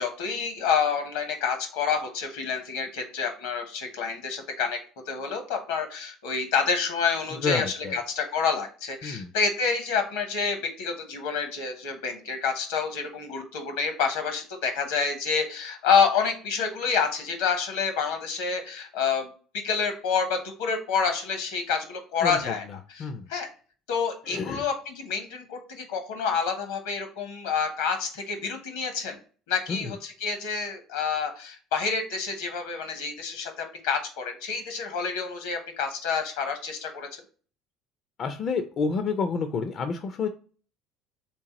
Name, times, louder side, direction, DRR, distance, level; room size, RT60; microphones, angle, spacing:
voice 1, 0.0-4.8 5.1-19.3 19.6-23.5 23.9-29.2 29.5-37.1, left 5 dB, 80° left, 6 dB, 0.9 m, -28 dB
voice 2, 7.3-8.0 9.0-9.3 22.2-22.4 23.0-23.3 24.3-24.6 29.7-29.9 38.2-40.3, left 5 dB, 50° left, 7 dB, 0.4 m, -29 dB
3.4 x 2.9 x 2.8 m, 0.39 s
hypercardioid pair, 75°, 0 cm